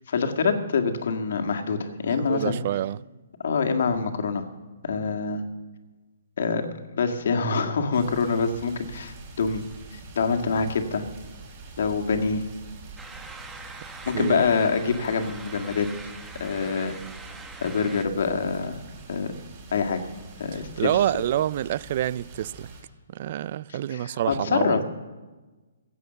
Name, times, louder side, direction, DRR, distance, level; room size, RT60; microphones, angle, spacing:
voice 1, 0.0-2.6 3.4-4.4 4.8-5.4 6.4-6.7 7.0-9.6 9.9-11.0 11.8-12.4 14.1-15.9 16.4-16.9 17.6-18.8 19.1-19.3 19.7-20.0 20.4-20.9 23.7-24.8, left 5 dB, 65° left, 1.8 m, -25 dB
voice 2, 2.3-3.0 14.1-14.4 20.5-22.7 23.1-24.8, right 12 dB, 45° right, 0.4 m, -27 dB
sound 1, 7.9-22.8, right 3 dB, 25° right, 5.0 m, -45 dB
sound 2, 13.0-18.1, right 3 dB, 5° right, 1.1 m, -43 dB
15.5 x 8.3 x 7.9 m
hypercardioid pair, 155°, 0 cm